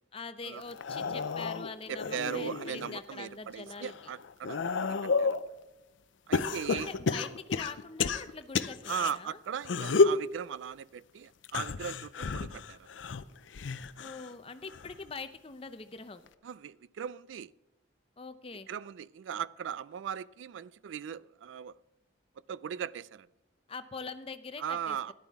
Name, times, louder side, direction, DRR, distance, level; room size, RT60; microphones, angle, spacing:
voice 1, 0.1-3.9 6.5-9.4 14.0-16.3 18.2-18.7 23.7-25.1, left 4 dB, 30° left, 0.6 m, -43 dB
sound 1, 0.7-3.0 3.5-5.5 6.3-9.1 9.6-10.2 11.4-14.3 14.7-15.1 16.3-16.4, left 4 dB, 80° left, 0.5 m, -31 dB
voice 2, 1.9-5.4 6.3-6.9 8.9-12.8 16.4-17.5 18.7-21.8 22.5-23.3 24.6-25.1, right 8 dB, 80° right, 0.3 m, -38 dB
12.5 x 11.0 x 3.5 m
head